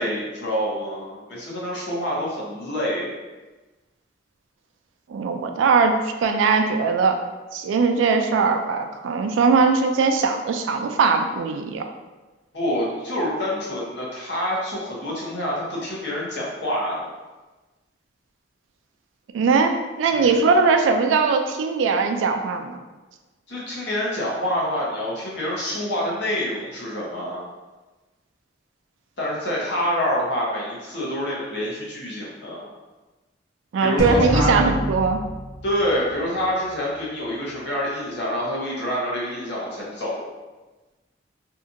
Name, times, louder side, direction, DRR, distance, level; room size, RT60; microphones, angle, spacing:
voice 1, 0.0-3.1 12.5-17.1 20.1-20.4 23.5-27.4 29.2-32.7 33.8-34.7 35.6-40.2, equal, 65° left, -5 dB, 0.8 m, -27 dB
voice 2, 5.1-7.2 7.5-11.8 19.3-22.8 33.7-35.2, right 4 dB, 80° right, 6 dB, 0.3 m, -20 dB
sound 1, 34.0-36.5, left 1 dB, 20° left, 0.4 m, -27 dB
2.7 x 2.4 x 2.5 m, 1.2 s
head